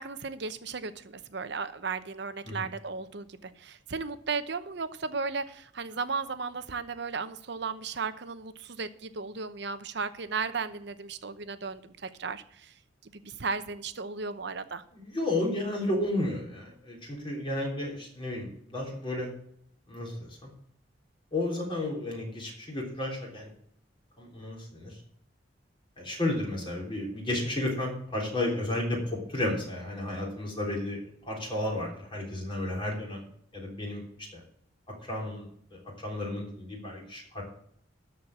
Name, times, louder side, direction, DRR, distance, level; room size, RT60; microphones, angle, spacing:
voice 1, 0.0-12.7 13.0-14.8, right 4 dB, 65° right, 11 dB, 0.8 m, -35 dB
voice 2, 14.9-19.3 19.9-20.5 21.3-23.5 24.2-25.0 26.0-33.2 33.5-34.0 34.3-34.4 35.1-35.5 35.7-37.4, left 1 dB, 30° left, -2 dB, 3.5 m, -32 dB
13.0 x 4.6 x 8.6 m, 0.66 s
head